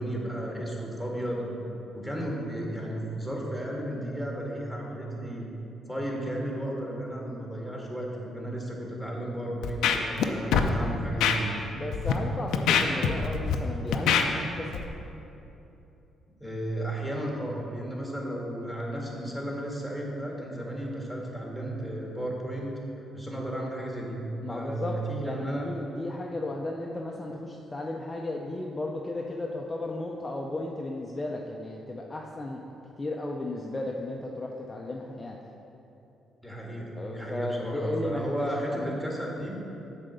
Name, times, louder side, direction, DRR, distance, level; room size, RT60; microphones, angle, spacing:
voice 1, 0.0-1.5 1.9-5.5 5.9-11.5 16.4-22.7 23.1-24.2 24.5-25.7 36.4-39.6, right 1 dB, 5° right, -2 dB, 1.7 m, -34 dB
Scratching (performance technique), 9.6-10.3 10.5-10.7 11.2-11.4 11.9-12.1 12.5-13.6 13.9-14.2 14.7-14.9, left 8 dB, 85° left, 0.5 m, -23 dB
voice 2, 11.7-14.8 24.4-25.0 25.2-32.6 33.0-35.4 37.0-39.0, left 2 dB, 20° left, -1 dB, 0.6 m, -34 dB
7.4 x 4.1 x 6.7 m, 2.9 s
cardioid pair, 90°, 0 cm